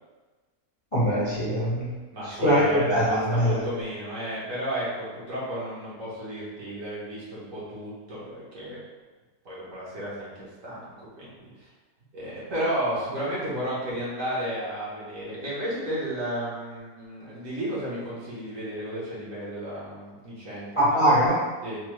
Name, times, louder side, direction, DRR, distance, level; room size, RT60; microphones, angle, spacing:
voice 1, 0.9-1.9 2.2-3.6 20.8-21.4, equal, 25° left, -9 dB, 0.7 m, -22 dB
voice 2, 2.1-8.8 9.4-10.3 10.6-11.7 12.1-20.8 21.6-21.8, equal, 60° right, -8 dB, 1.6 m, -33 dB
4.1 x 2.7 x 3.1 m, 1.3 s
omnidirectional pair, 1.6 m